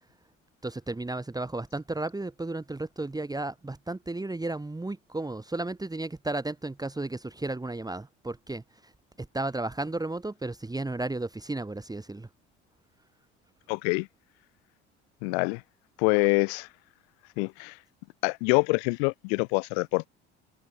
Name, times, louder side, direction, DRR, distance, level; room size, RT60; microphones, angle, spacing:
voice 1, 0.6-8.6 9.2-12.3, right 2 dB, 10° right, 1.9 m, -33 dB
voice 2, 13.7-14.1 15.2-15.6 16.0-16.7 17.4-17.8 18.2-20.1, left 38 dB, 65° left, 3.1 m, -25 dB
figure-of-eight pair, 60°, 35 cm